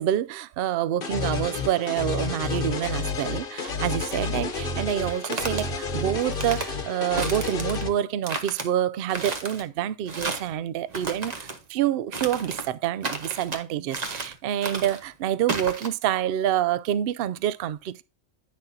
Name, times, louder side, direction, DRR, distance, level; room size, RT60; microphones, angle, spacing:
voice 1, 0.0-18.0, right 11 dB, 65° right, 0.6 m, -27 dB
sound 1, 1.0-7.9, left 4 dB, 45° left, 1.1 m, -30 dB
sound 2, 5.0-5.6 6.2-6.7 7.2-7.8 8.2-8.7 9.1-9.6 10.1-10.5 10.9-11.6 12.1-12.7 13.0-13.6 13.9-14.3 14.6-15.0 15.5-15.9, right 3 dB, 35° right, 1.1 m, -32 dB
9.5 x 6.2 x 2.7 m
omnidirectional pair, 1.4 m